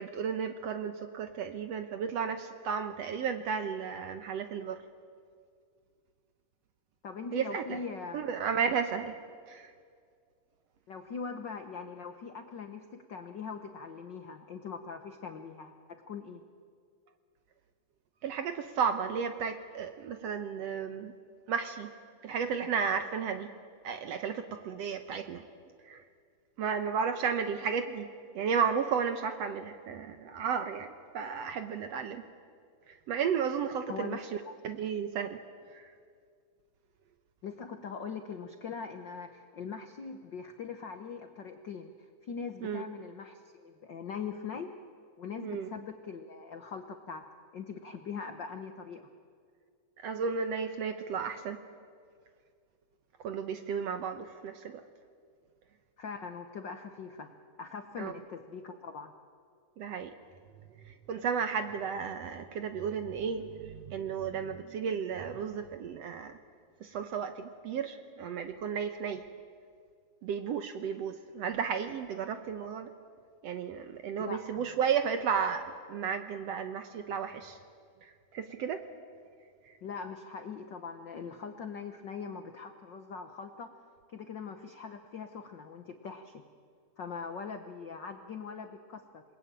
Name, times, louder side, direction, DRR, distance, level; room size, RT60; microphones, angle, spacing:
voice 1, 0.0-4.8 7.3-7.8 8.1-9.2 9.5-9.7 18.2-21.1 21.5-21.9 22.2-23.5 23.8-25.4 25.8-26.0 26.6-28.1 28.3-32.3 32.9-35.4 35.7-35.9 42.6-42.9 45.4-45.7 50.0-51.6 53.2-54.8 58.0-58.2 59.8-60.1 60.8-66.4 66.8-69.2 70.2-72.9 73.4-77.6 78.0-78.8 79.6-79.8, right 6 dB, 65° right, 8 dB, 1.7 m, -33 dB
voice 2, 7.0-8.3 10.9-16.4 33.9-34.5 37.4-41.9 42.2-44.7 45.2-47.2 47.5-49.1 56.0-57.3 57.6-59.1 74.2-74.6 79.8-83.7 84.1-86.4 87.0-89.2, left 5 dB, 85° left, 7 dB, 1.0 m, -42 dB
28.0 x 20.5 x 9.0 m, 2.1 s
omnidirectional pair, 3.8 m